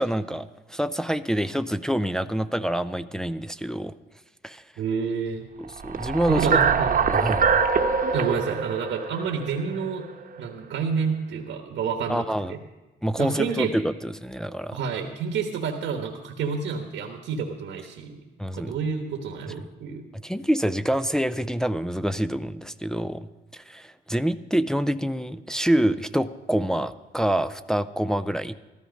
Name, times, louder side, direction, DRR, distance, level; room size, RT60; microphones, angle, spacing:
voice 1, 0.0-3.9 4.4-4.6 5.6-6.5 7.1-7.6 12.1-12.5 13.0-14.8 18.4-18.8 20.2-28.5, equal, 5° left, 10 dB, 0.4 m, -26 dB
voice 2, 4.8-5.5 6.3-7.0 8.1-10.0 10.4-12.6 13.2-13.7 14.7-20.0, right 6 dB, 70° right, 3 dB, 1.2 m, -29 dB
sound 1, 5.8-10.1, right 5 dB, 45° right, 1.0 m, -23 dB
13.5 x 13.5 x 5.2 m, 1.1 s
cardioid pair, 90°, 20 cm